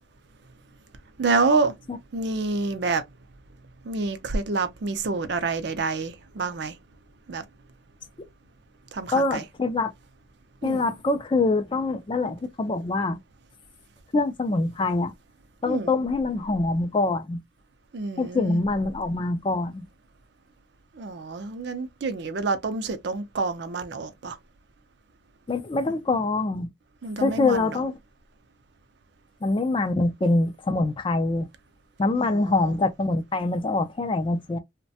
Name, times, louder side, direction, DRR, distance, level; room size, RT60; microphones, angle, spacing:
voice 1, 1.2-1.7 2.1-3.0 3.8-6.8 7.3-7.4 8.9-9.5 10.6-10.9 15.6-15.9 17.9-18.6 20.9-24.4 27.0-27.8 32.2-32.8, right 3 dB, 55° right, 0.5 m, -28 dB
voice 2, 9.1-9.9 10.6-13.2 14.1-15.1 15.6-17.4 18.2-19.9 25.5-26.7 27.2-27.9 29.4-31.5 32.0-34.6, left 2 dB, 25° left, 0.3 m, -24 dB
3.1 x 2.1 x 2.7 m
head